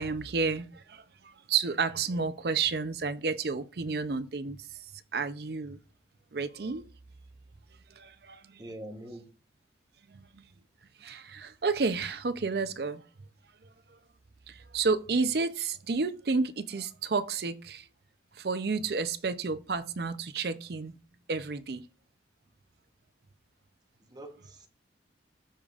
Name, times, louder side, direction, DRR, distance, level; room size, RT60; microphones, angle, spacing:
voice 1, 0.0-4.6 5.1-5.8 6.3-6.8 8.0-8.6 10.1-10.4 11.0-13.0 14.5-17.8 18.4-20.9 21.3-21.8, right 4 dB, 60° right, 0.5 m, -31 dB
voice 2, 8.6-9.2 24.1-24.7, right 1 dB, 20° right, 1.0 m, -43 dB
13.5 x 4.9 x 2.4 m
head